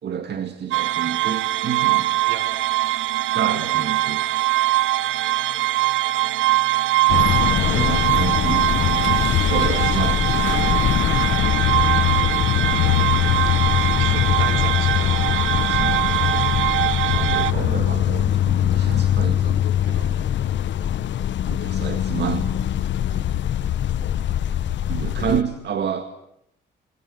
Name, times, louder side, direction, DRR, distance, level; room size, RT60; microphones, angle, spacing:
voice 1, 0.0-2.1 3.3-4.3 7.7-9.1 9.5-10.5 15.5-16.0 17.1-19.7 21.5-22.5 24.9-26.1, right 8 dB, 60° right, 9 dB, 2.0 m, -29 dB
sound 1, 0.7-17.5, right 16 dB, 90° right, 1.0 m, -22 dB
sound 2, 7.1-25.4, left 11 dB, 65° left, 1.0 m, -22 dB
voice 2, 12.7-13.3 14.0-15.2 19.8-20.1, right 7 dB, 75° right, 7 dB, 3.8 m, -37 dB
27.5 x 23.0 x 8.8 m, 0.77 s
cardioid pair, 90°, 20 cm